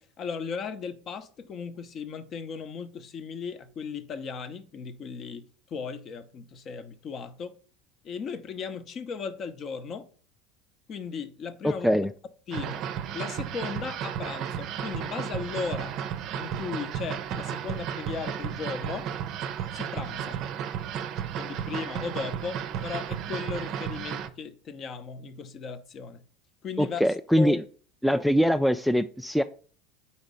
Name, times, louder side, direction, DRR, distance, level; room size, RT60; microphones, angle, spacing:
voice 1, 0.0-7.5 8.0-10.1 10.9-11.9 12.5-12.8 13.1-16.0 16.4-19.1 19.7-20.4 21.4-26.2 26.6-27.0 27.4-27.5, left 5 dB, 45° left, 0.6 m, -36 dB
voice 2, 11.6-12.1 26.8-27.6 28.0-29.4, equal, ahead, 0.3 m, -23 dB
sound 1, 12.5-24.3, right 9 dB, 55° right, 0.5 m, -33 dB
4.4 x 4.1 x 5.2 m
hypercardioid pair, 85°, 0 cm